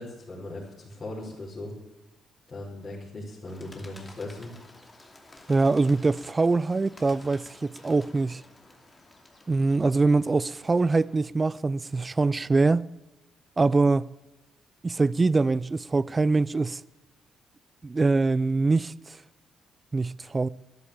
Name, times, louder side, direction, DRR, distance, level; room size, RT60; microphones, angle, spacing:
voice 1, 0.0-1.7 2.5-4.5, left 2 dB, 35° left, 5.6 m, -38 dB
Bird, 3.5-11.2, left 2 dB, 20° left, 2.7 m, -52 dB
voice 2, 5.5-8.4 9.5-12.8 13.6-14.1 14.8-16.8 17.8-19.2 19.9-20.5, right 3 dB, 25° right, 0.4 m, -23 dB
13.5 x 11.0 x 8.7 m
cardioid pair, 90°, 0 cm